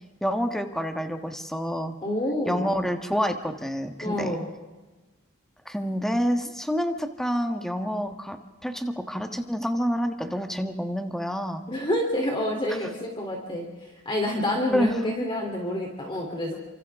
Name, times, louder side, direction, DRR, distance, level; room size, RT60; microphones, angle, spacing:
voice 1, 0.2-1.9 2.5-4.4 5.6-11.6 14.7-15.0, equal, ahead, 5 dB, 1.5 m, -28 dB
voice 2, 2.0-2.7 4.0-4.5 11.7-16.5, left 1 dB, 25° left, 0 dB, 3.4 m, -28 dB
29.5 x 26.0 x 3.7 m, 1.2 s
head